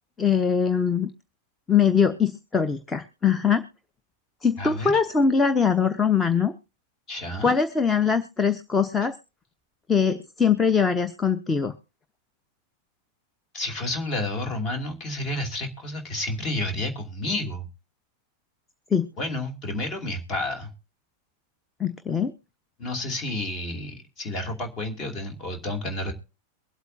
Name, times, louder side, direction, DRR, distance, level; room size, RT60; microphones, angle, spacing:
voice 1, 0.2-1.1 1.7-3.6 4.4-6.5 7.4-9.2 9.9-11.7 18.9-19.1 21.8-22.3, left 6 dB, 15° left, 11 dB, 0.8 m, -22 dB
voice 2, 4.6-4.9 7.1-7.5 13.5-17.7 19.2-20.7 22.8-26.1, left 1 dB, 30° left, 4 dB, 2.6 m, -30 dB
23.0 x 8.1 x 2.7 m, 0.32 s
figure-of-eight pair, 90°, 0 cm